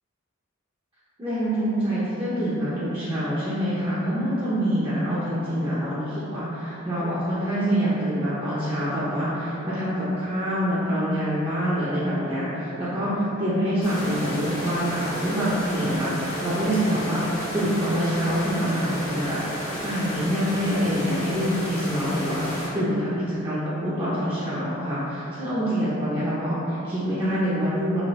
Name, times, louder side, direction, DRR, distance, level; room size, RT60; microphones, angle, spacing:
voice 1, 1.2-28.0, equal, 25° right, -10 dB, 0.5 m, -26 dB
sound 1, 13.8-22.7, equal, 80° left, 1.0 m, -33 dB
4.0 x 2.6 x 3.1 m, 3.0 s
head